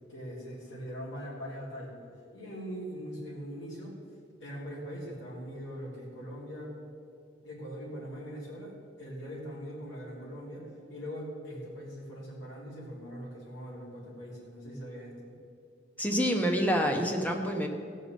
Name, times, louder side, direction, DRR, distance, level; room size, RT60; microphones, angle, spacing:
voice 1, 0.1-3.9 4.4-6.8 7.4-15.3, equal, 80° left, -5 dB, 3.2 m, -41 dB
voice 2, 16.0-17.7, equal, 10° left, 2 dB, 0.9 m, -27 dB
15.5 x 5.4 x 7.3 m, 2.3 s
head